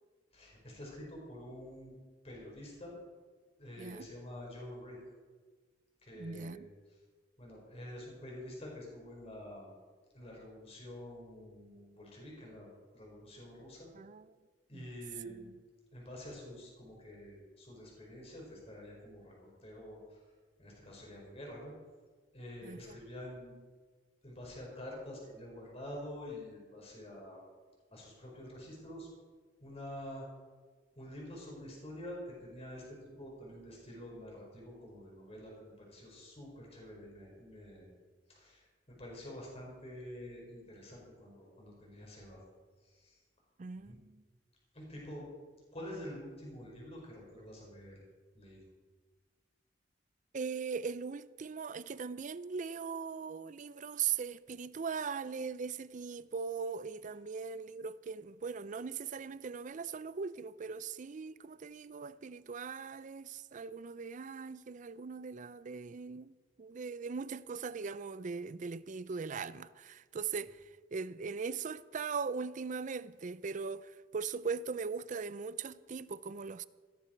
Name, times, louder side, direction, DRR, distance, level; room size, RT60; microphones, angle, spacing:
voice 1, 0.3-2.0 2.2-2.9 3.6-5.0 6.0-6.6 7.4-9.7 10.1-13.9 14.7-15.5 15.9-20.2 20.6-21.7 22.3-23.5 24.2-27.4 27.9-29.1 29.6-30.2 31.0-37.9 38.3-38.6 39.0-42.4 42.9-43.1 43.8-44.0 44.7-45.3 45.7-48.0 48.3-48.6, left 1 dB, 35° left, 4.9 m, -47 dB
voice 2, 6.1-6.7 13.9-14.3 14.7-14.9 15.4-15.5 22.6-23.0 43.6-44.2 50.3-70.6 70.9-76.6, right 5 dB, 45° right, 0.4 m, -40 dB
16.5 x 13.0 x 4.5 m
head